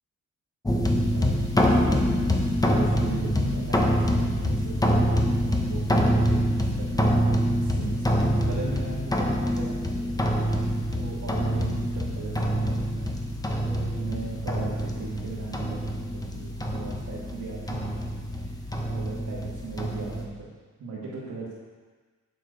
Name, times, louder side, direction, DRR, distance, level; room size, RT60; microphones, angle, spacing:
sound 1, 0.6-20.2, equal, 10° left, 0.8 m, -25 dB
voice 1, 1.1-5.1 5.4-7.3 7.6-10.2 10.6-13.1 13.5-18.0 18.4-18.6 18.9-20.5 20.8-21.5, right 4 dB, 60° right, -8 dB, 1.7 m, -38 dB
7.9 x 7.7 x 5.0 m, 1.4 s
wide cardioid pair, 160°, 31 cm